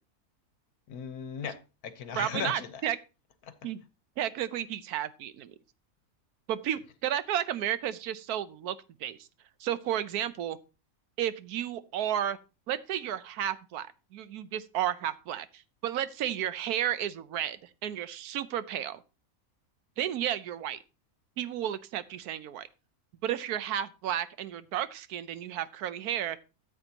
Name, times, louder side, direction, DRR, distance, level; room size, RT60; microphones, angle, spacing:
voice 1, 0.9-2.9 3.4-3.5, left 7 dB, 80° left, 1.5 m, -37 dB
voice 2, 2.2-3.0 3.6-3.8 4.2-5.5 6.5-9.2 9.6-10.6 11.2-12.4 12.7-19.0 20.0-20.8 21.4-22.7 23.2-26.4, right 11 dB, 85° right, 1.2 m, -32 dB
13.5 x 7.9 x 2.9 m
omnidirectional pair, 1.6 m